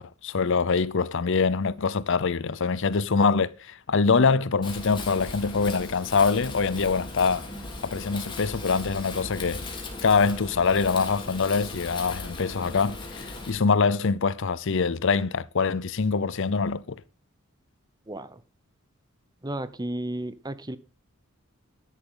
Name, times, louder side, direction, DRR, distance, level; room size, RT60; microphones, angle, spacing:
voice 1, 0.0-7.5 7.8-9.7 10.0-17.0, left 4 dB, 60° left, 0.6 m, -24 dB
Wind, 4.6-13.5, left 2 dB, 20° left, 3.2 m, -38 dB
voice 2, 18.1-18.4 19.4-20.8, right 1 dB, 20° right, 0.8 m, -33 dB
12.5 x 10.5 x 3.8 m
head